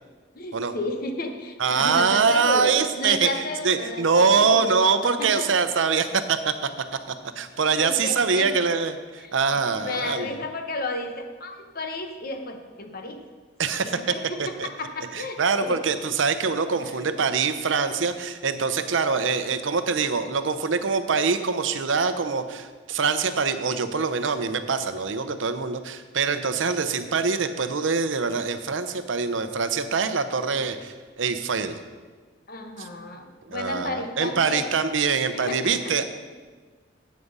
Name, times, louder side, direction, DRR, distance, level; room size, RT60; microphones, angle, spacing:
voice 1, 0.3-5.5 7.8-8.5 9.2-9.3 9.7-13.2 13.9-15.8 16.8-17.0 32.5-34.8 35.3-36.0, left 2 dB, 50° left, 5 dB, 1.0 m, -33 dB
voice 2, 1.6-6.7 7.1-10.4 13.6-14.0 14.4-14.7 15.1-31.8 32.8-32.9 33.4-36.0, right 5 dB, 90° right, 10 dB, 0.7 m, -24 dB
9.8 x 8.4 x 5.4 m, 1.4 s
head